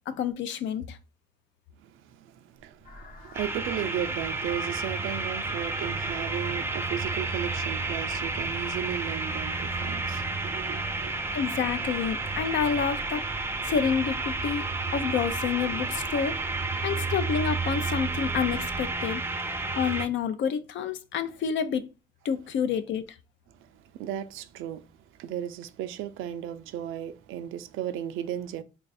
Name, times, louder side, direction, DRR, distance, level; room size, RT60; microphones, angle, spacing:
voice 1, 0.1-1.0 11.3-13.2 13.6-14.7 14.9-16.4 16.8-19.2 19.8-21.9 22.2-23.1, left 7 dB, 70° left, 0.5 m, -28 dB
voice 2, 1.8-11.1 23.6-24.9 25.2-28.6, right 10 dB, 85° right, 0.4 m, -35 dB
sound 1, 2.6-18.9, right 4 dB, 20° left, 0.8 m, -46 dB
sound 2, 2.8-15.0, left 4 dB, 45° left, 0.9 m, -50 dB
sound 3, 3.3-20.1, right 3 dB, 10° right, 0.5 m, -31 dB
3.3 x 2.4 x 4.0 m
cardioid pair, 90°, 20 cm